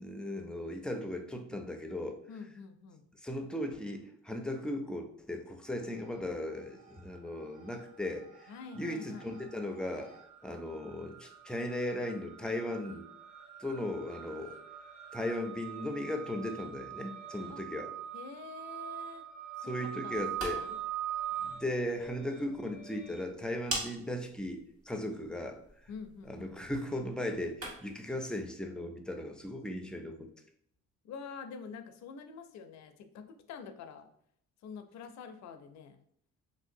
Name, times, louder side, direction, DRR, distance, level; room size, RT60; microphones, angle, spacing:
voice 1, 0.0-2.2 3.2-10.1 10.4-13.1 13.6-14.6 15.1-17.9 19.6-20.7 21.4-25.9 26.3-30.3, left 1 dB, 5° left, 4 dB, 0.4 m, -37 dB
voice 2, 2.3-3.1 8.5-9.3 17.5-17.6 18.1-19.2 19.6-20.8 25.9-26.5 31.0-34.1 34.6-36.0, left 5 dB, 65° left, 7 dB, 0.4 m, -47 dB
sound 1, 5.7-6.3 6.6-23.2, right 11 dB, 30° right, 0.8 m, -43 dB
sound 2, 20.1-28.0, right 2 dB, 50° right, 1.4 m, -45 dB
3.1 x 2.6 x 2.6 m, 0.68 s
cardioid pair, 90°, 30 cm